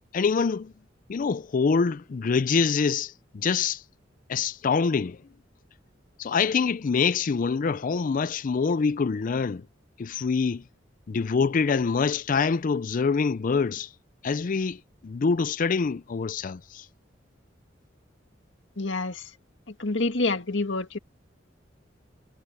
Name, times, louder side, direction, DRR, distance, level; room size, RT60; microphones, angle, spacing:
voice 1, 0.1-0.7 1.1-3.8 4.3-5.2 6.2-9.6 10.0-10.6 11.1-13.9 14.2-16.8, left 5 dB, 45° left, 0.4 m, -25 dB
voice 2, 18.8-19.3 19.8-21.0, left 3 dB, 75° left, 2.0 m, -27 dB
head